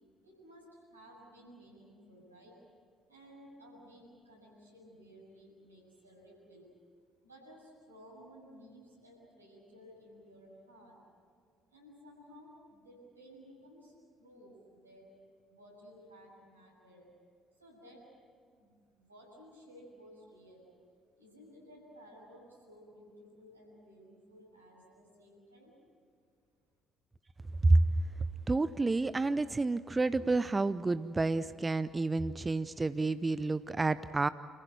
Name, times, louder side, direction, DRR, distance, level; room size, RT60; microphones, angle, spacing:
voice 1, 0.2-2.5 3.1-6.7 7.2-11.0 11.7-15.2 15.5-17.1 17.5-18.1 18.6-20.7 21.2-25.7, equal, 90° right, -5 dB, 7.5 m, -56 dB
voice 2, 28.5-34.3, right 3 dB, 25° right, 15 dB, 0.6 m, -29 dB
29.0 x 15.5 x 9.6 m, 2.1 s
figure-of-eight pair, 50°, 0 cm